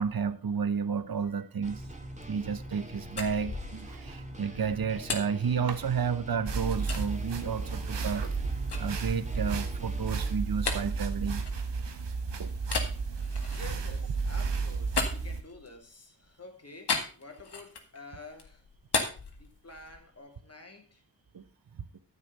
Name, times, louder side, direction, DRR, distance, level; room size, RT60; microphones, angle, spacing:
voice 1, 0.0-1.8 2.3-8.2 8.7-11.4 12.4-12.5 21.3-21.4 21.8-22.0, right 6 dB, 55° right, 1.0 m, -31 dB
sound 1, 1.6-10.3, right 1 dB, 15° right, 2.3 m, -44 dB
sound 2, 2.9-6.3 6.9-7.1 7.6-12.1 12.6-15.9 16.9-18.0 18.3-20.1, left 4 dB, 70° left, 2.0 m, -37 dB
sound 3, 6.5-15.4, right 4 dB, 80° right, 1.4 m, -33 dB
voice 2, 13.4-18.7 19.4-21.0, left 3 dB, 35° left, 2.7 m, -49 dB
10.0 x 7.1 x 5.4 m
cardioid pair, 50°, 42 cm